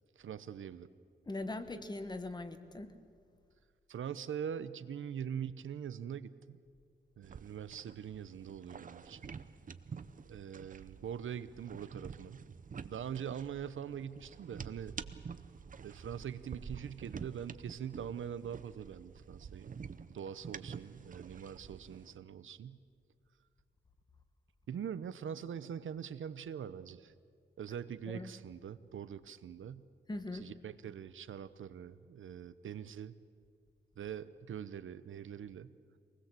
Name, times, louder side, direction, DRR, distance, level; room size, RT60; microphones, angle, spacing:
voice 1, 0.2-0.9 3.9-6.6 7.2-9.4 10.3-12.4 12.8-15.0 15.8-19.8 20.1-22.8 24.7-27.1 27.6-29.9 30.4-33.1 34.0-35.7, right 8 dB, 85° right, 14 dB, 0.8 m, -43 dB
voice 2, 1.3-2.9 28.1-28.3 30.1-30.5, left 2 dB, 20° left, 9 dB, 1.3 m, -41 dB
sound 1, 7.2-22.2, right 6 dB, 45° right, 0.7 m, -49 dB
24.0 x 19.5 x 7.6 m, 2.2 s
wide cardioid pair, 145°, 20 cm